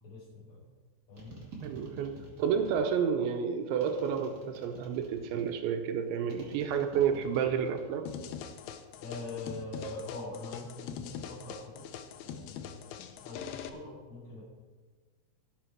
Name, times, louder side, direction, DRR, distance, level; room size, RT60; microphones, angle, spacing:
voice 1, 0.0-0.6 1.1-1.4 9.0-11.9 12.2-14.4, left 2 dB, 35° left, -6 dB, 4.3 m, -43 dB
sound 1, 1.2-3.0 3.8-5.6 6.3-8.0 8.3-8.9, right 3 dB, 35° right, 1.8 m, -48 dB
voice 2, 1.6-8.1, right 7 dB, 80° right, 6 dB, 3.1 m, -30 dB
sound 2, 8.1-13.7, left 8 dB, 90° left, 2.2 m, -43 dB
18.5 x 6.8 x 4.5 m, 1.4 s
omnidirectional pair, 5.4 m